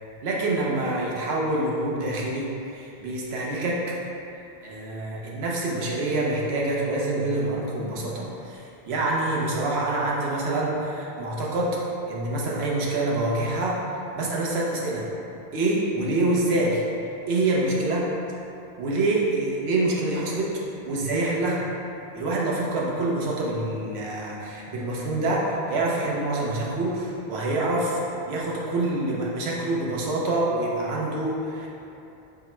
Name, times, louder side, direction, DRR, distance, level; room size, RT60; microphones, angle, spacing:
voice 1, 0.2-3.8 4.6-11.8 12.1-13.8 14.1-15.1 15.5-16.8 17.3-18.4 18.8-20.5 20.9-21.7 22.1-31.7, right 2 dB, 85° right, -4 dB, 1.0 m, -26 dB
4.4 x 2.1 x 4.3 m, 2.9 s
omnidirectional pair, 1.0 m